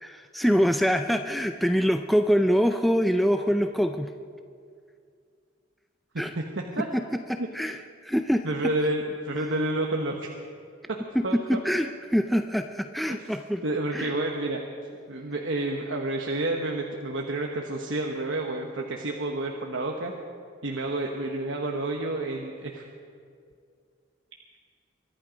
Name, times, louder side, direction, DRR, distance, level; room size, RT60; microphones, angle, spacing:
voice 1, 0.0-4.1 6.2-6.3 6.9-7.0 7.3-7.8 8.0-8.4 11.1-13.6 13.9-14.1, equal, ahead, 6 dB, 0.4 m, -24 dB
voice 2, 6.1-6.9 7.4-7.5 8.4-10.3 10.9-11.0 11.2-11.6 13.1-13.4 13.6-14.6 15.1-20.1 20.6-22.8, right 2 dB, 70° right, 1 dB, 1.2 m, -30 dB
23.5 x 11.5 x 5.2 m, 2.3 s
head